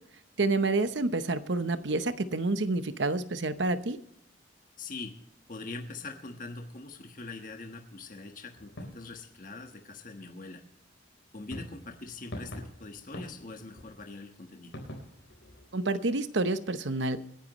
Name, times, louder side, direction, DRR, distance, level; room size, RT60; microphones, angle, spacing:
voice 1, 0.4-4.0 15.7-17.2, right 2 dB, 70° right, 11 dB, 0.9 m, -28 dB
voice 2, 4.8-5.1 5.5-10.6 11.3-14.7, left 3 dB, 45° left, 4 dB, 1.3 m, -43 dB
sound 1, 8.5-10.0 11.5-15.8, equal, 75° left, 4.1 m, -46 dB
26.0 x 10.5 x 3.1 m, 0.72 s
head